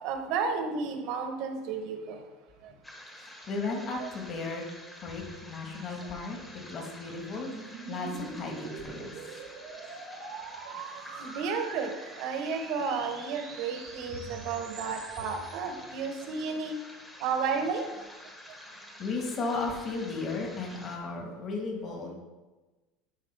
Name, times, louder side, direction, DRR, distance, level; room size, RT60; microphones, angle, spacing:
voice 1, 0.0-2.2 2.6-2.7 3.7-4.1 11.2-11.9 12.2-16.8 17.2-17.8, right 5 dB, 55° right, 5 dB, 1.1 m, -32 dB
sound 1, 2.8-21.0, left 1 dB, 5° left, 1.0 m, -49 dB
voice 2, 3.2-4.6 5.0-6.4 6.7-7.5 7.9-9.1 19.0-22.2, left 3 dB, 35° left, 1 dB, 1.5 m, -35 dB
sound 2, 5.8-15.5, right 5 dB, 75° right, 1.3 m, -45 dB
11.0 x 4.8 x 3.5 m, 1.2 s
supercardioid pair, 155°, 0 cm